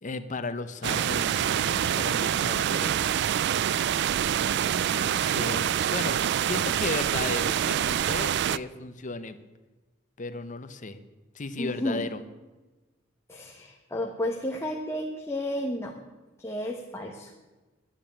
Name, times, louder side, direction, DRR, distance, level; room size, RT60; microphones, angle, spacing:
voice 1, 0.0-3.2 4.5-9.4 10.2-11.0 11.3-12.2, left 3 dB, 40° left, 10 dB, 0.8 m, -35 dB
sound 1, 0.8-8.6, right 9 dB, 60° right, 0.3 m, -26 dB
voice 2, 11.6-12.1 13.3-15.9 16.4-17.3, left 1 dB, 15° left, 1 dB, 1.1 m, -32 dB
10.5 x 9.8 x 8.7 m, 1.2 s
head